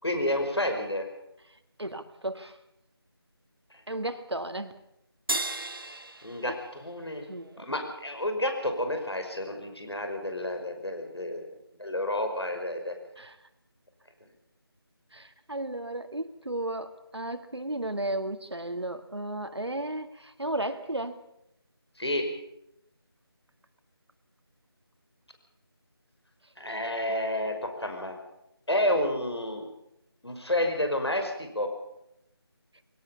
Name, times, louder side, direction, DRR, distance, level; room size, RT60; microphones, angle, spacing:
voice 1, 0.0-1.1 6.2-7.2 7.6-11.5 11.8-12.9 22.0-22.3 26.6-28.2 28.7-29.6 30.2-31.7, left 1 dB, 80° left, 5 dB, 5.6 m, -30 dB
voice 2, 1.8-2.6 3.9-4.7 6.4-6.5 7.3-7.7 13.2-13.4 15.1-21.2, right 1 dB, 85° right, 8 dB, 2.1 m, -34 dB
sound 1, 5.3-7.9, right 2 dB, 60° right, 1.5 m, -36 dB
22.0 x 17.5 x 7.1 m, 0.81 s
figure-of-eight pair, 165°, 13 cm